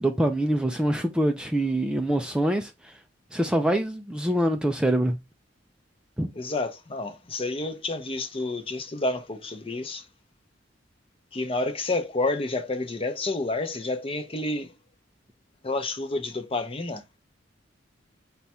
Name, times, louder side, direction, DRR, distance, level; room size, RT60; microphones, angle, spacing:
voice 1, 0.0-3.0 3.3-5.2 6.2-6.3, right 1 dB, 5° right, 0.3 m, -25 dB
voice 2, 6.4-10.1 11.3-14.7 15.6-17.0, left 2 dB, 30° left, 0.6 m, -29 dB
5.3 x 2.3 x 4.2 m
head